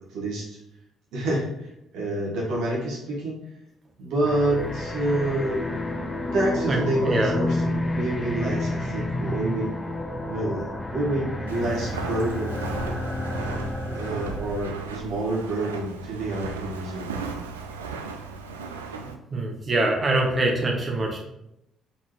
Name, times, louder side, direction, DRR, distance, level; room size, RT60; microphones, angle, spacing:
voice 1, 0.1-0.6 1.1-3.4 4.0-5.8 6.3-9.7 10.3-12.5 13.4-13.6 13.9-17.2, right 1 dB, 60° right, -5 dB, 1.7 m, -28 dB
sound 1, 4.2-14.8, left 1 dB, 20° left, 0.6 m, -30 dB
voice 2, 6.6-7.3 19.3-21.2, right 2 dB, 35° right, 0 dB, 1.2 m, -24 dB
Walk footsteps, 11.5-19.2, right 4 dB, 80° right, 0.3 m, -36 dB
4.1 x 4.0 x 3.2 m, 0.84 s
figure-of-eight pair, 45°, 0 cm